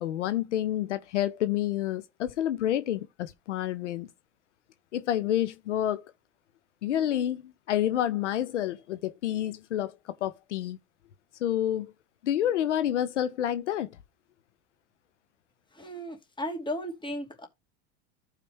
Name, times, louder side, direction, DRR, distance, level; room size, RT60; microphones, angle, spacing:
voice 1, 0.0-4.1 4.9-6.0 6.8-10.8 11.4-11.9 12.2-14.0, left 11 dB, 90° left, 0.7 m, -29 dB
voice 2, 15.7-17.5, equal, 15° left, 2.5 m, -35 dB
14.0 x 5.0 x 3.2 m
hypercardioid pair, 95°, 35 cm